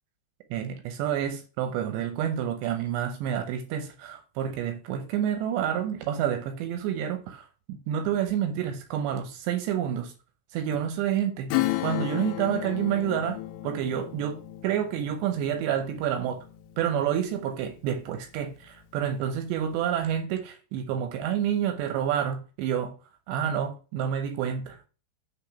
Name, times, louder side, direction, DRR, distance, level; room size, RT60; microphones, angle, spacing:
voice 1, 0.5-10.1 10.5-11.5 11.8-13.4 13.6-16.4 16.8-23.0 23.3-24.8, right 9 dB, 80° right, 2.5 m, -29 dB
Acoustic guitar / Strum, 11.5-17.7 18.1-18.2, left 16 dB, 90° left, 3.4 m, -33 dB
8.2 x 3.4 x 5.7 m
omnidirectional pair, 5.8 m